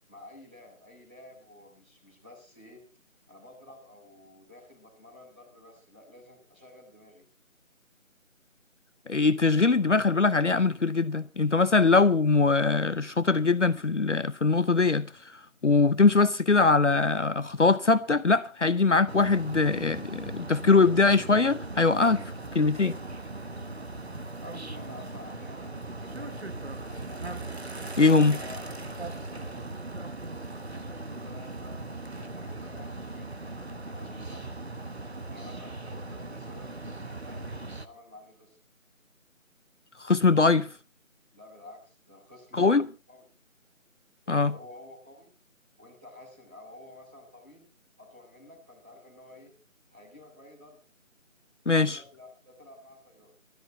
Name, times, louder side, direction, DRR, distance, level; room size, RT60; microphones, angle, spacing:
voice 1, 0.1-2.8 3.3-7.2 24.4-27.2 27.8-29.7 30.6-34.6 35.3-38.6 41.3-43.2 44.2-45.3 45.8-47.7 48.0-49.5 49.9-50.8 51.8-53.3, left 2 dB, 5° right, 2.8 m, -51 dB
voice 2, 9.1-15.1 15.6-22.2 22.5-22.9 28.0-28.4 40.0-40.7 42.5-42.9 44.3-44.5 51.7-52.0, left 4 dB, 60° left, 0.7 m, -22 dB
sound 1, 19.1-37.9, right 2 dB, 50° right, 1.1 m, -39 dB
16.5 x 13.0 x 4.3 m
figure-of-eight pair, 175°, 41 cm